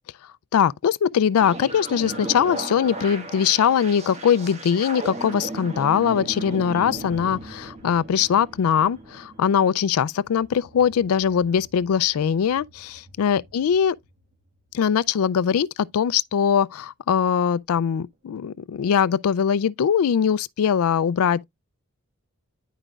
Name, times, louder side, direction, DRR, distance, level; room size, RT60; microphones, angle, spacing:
voice 1, 0.5-14.0 14.7-21.4, left 8 dB, 70° left, 0.3 m, -21 dB
sound 1, 1.4-14.4, right 2 dB, 30° right, 1.5 m, -37 dB
11.0 x 5.0 x 2.3 m
head